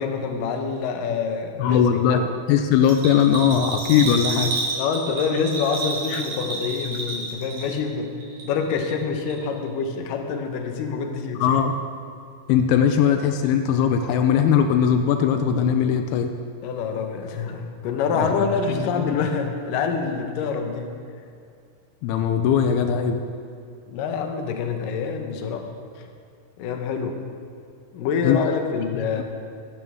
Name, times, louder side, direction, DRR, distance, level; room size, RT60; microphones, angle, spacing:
voice 1, 0.0-2.3 4.8-8.1 8.4-11.6 16.6-20.9 23.9-25.7 26.0-26.1 26.6-27.2 27.9-29.2, left 5 dB, 70° left, 4 dB, 2.5 m, -26 dB
voice 2, 1.6-2.2 2.5-4.5 6.1-6.2 11.4-11.8 12.5-16.3 18.2-18.3 18.7-19.2 22.0-23.3 28.2-28.4 28.9-29.2, left 8 dB, 85° left, 6 dB, 2.6 m, -20 dB
Bell, 2.8-7.9 8.2-9.0 9.3-9.4, right 3 dB, 90° right, 4.8 m, -30 dB
20.0 x 12.0 x 3.6 m, 2.4 s
omnidirectional pair, 4.4 m